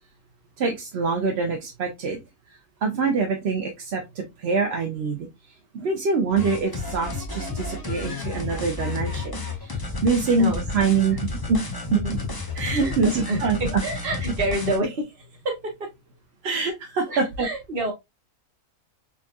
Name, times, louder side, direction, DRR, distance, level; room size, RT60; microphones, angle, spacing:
voice 1, 0.6-2.2 2.8-5.3 5.7-11.2 11.5-11.6 11.9-12.0 12.6-13.8 16.4-17.5, right 4 dB, 55° right, 2 dB, 0.8 m, -25 dB
sound 1, 6.3-14.8, left 3 dB, 25° left, 0.5 m, -31 dB
voice 2, 12.8-15.5 17.1-17.9, right 1 dB, 40° right, 2 dB, 1.2 m, -28 dB
3.9 x 3.5 x 2.3 m, 0.20 s
omnidirectional pair, 1.6 m